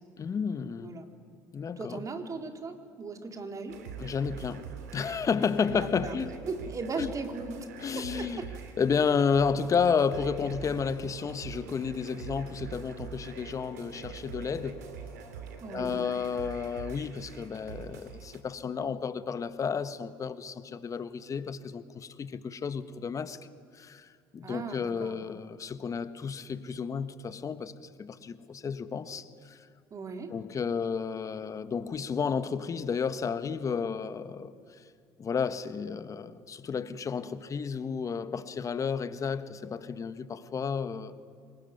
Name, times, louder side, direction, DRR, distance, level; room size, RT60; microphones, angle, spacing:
voice 1, 0.2-0.9 1.5-2.0 4.0-4.6 4.9-6.3 7.0-7.1 7.8-8.4 8.8-14.8 15.7-23.4 23.7-29.6 30.3-34.5 35.2-41.2, left 6 dB, 40° left, 1.5 m, -32 dB
voice 2, 1.8-3.8 5.7-7.6 7.9-8.5 15.6-16.0 24.4-25.2 29.9-30.3, right 3 dB, 40° right, 3.2 m, -38 dB
sound 1, 3.7-18.4, right 7 dB, 90° right, 2.6 m, -44 dB
26.0 x 20.5 x 9.5 m
hypercardioid pair, 65°, 9 cm